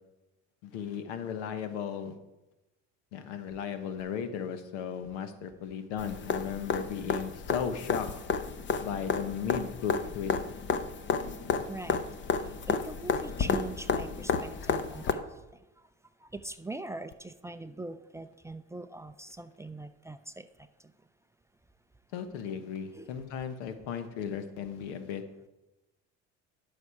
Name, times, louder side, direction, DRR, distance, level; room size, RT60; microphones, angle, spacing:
voice 1, 0.6-2.1 3.1-8.1 8.8-10.3 22.1-25.2, left 7 dB, 90° left, 9 dB, 1.2 m, -36 dB
sound 1, 6.0-15.1 17.1-17.2, left 5 dB, 35° left, 0.8 m, -32 dB
voice 2, 11.7-12.0 12.7-15.2 16.3-20.5 22.9-23.1, right 2 dB, 10° right, 10 dB, 0.4 m, -42 dB
11.5 x 6.5 x 4.8 m, 1.0 s
supercardioid pair, 100°, 34 cm